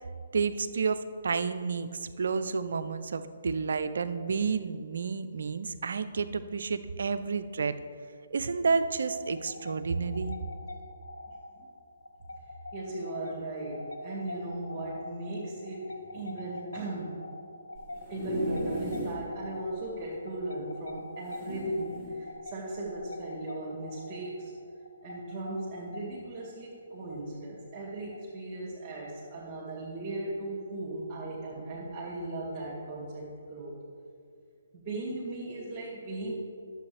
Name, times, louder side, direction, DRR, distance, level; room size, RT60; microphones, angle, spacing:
voice 1, 0.3-7.8 8.3-10.4, right 5 dB, 65° right, 11 dB, 0.5 m, -30 dB
sound 1, 9.2-28.5, left 2 dB, 80° left, 0.8 m, -45 dB
voice 2, 12.7-17.2 18.1-24.5 25.0-33.7 34.7-36.4, right 1 dB, 30° right, -5 dB, 1.9 m, -37 dB
sound 2, 17.7-19.3 19.7-19.8 20.0-20.1 21.2-22.2 22.9-23.0, right 1 dB, 5° right, 1.9 m, -36 dB
11.5 x 7.6 x 3.4 m, 2.3 s
figure-of-eight pair, 135°, 0 cm